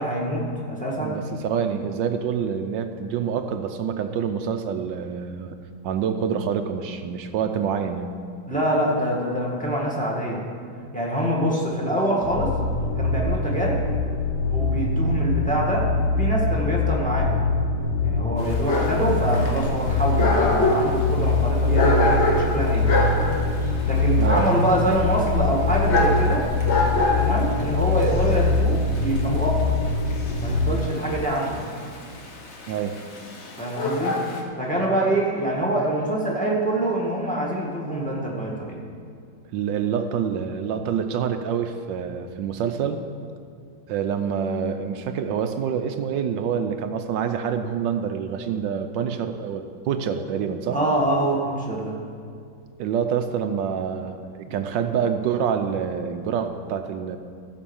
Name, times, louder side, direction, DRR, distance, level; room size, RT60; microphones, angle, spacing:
voice 1, 0.0-1.2 8.5-10.4 10.9-12.5 13.0-13.8 14.5-15.9 16.2-17.4 18.0-22.9 23.8-26.5 27.2-29.6 30.4-31.6 33.6-34.2 34.6-38.8 50.7-52.0 54.4-54.6, right 1 dB, 5° left, -2 dB, 1.5 m, -25 dB
voice 2, 1.0-5.6 5.8-8.1 24.2-24.4 32.7-33.0 39.5-43.0 43.9-50.8 52.8-57.2, right 7 dB, 80° right, 7 dB, 1.3 m, -26 dB
sound 1, 12.2-30.7, left 3 dB, 70° left, 1.4 m, -23 dB
Dog, 18.4-34.4, left 2 dB, 45° left, 1.2 m, -26 dB
14.0 x 5.3 x 7.1 m, 2.2 s
omnidirectional pair, 2.0 m